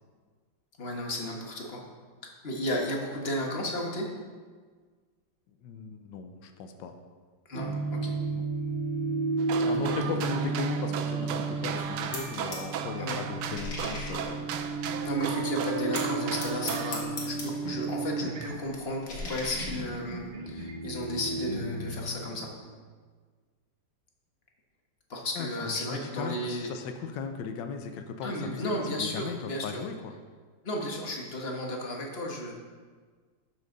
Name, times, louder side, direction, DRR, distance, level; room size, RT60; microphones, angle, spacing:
voice 1, 0.8-1.8 2.4-4.1 7.5-8.1 9.6-10.4 13.0-13.2 15.0-22.5 25.1-26.7 28.2-29.8 30.6-32.5, left 1 dB, 35° left, 0 dB, 1.5 m, -34 dB
voice 2, 5.6-6.9 8.3-8.4 9.7-14.5 25.4-28.7 29.0-29.4 29.6-30.1, left 6 dB, 80° left, 6 dB, 1.4 m, -37 dB
sound 1, 7.5-22.7, right 3 dB, 40° right, 0.9 m, -33 dB
sound 2, 9.4-17.0, right 8 dB, 75° right, 1.2 m, -36 dB
sound 3, 11.8-12.7 13.0-15.2 15.9-17.8 18.1-20.3, left 2 dB, 65° left, 2.2 m, -41 dB
12.0 x 6.4 x 3.9 m, 1.5 s
omnidirectional pair, 2.0 m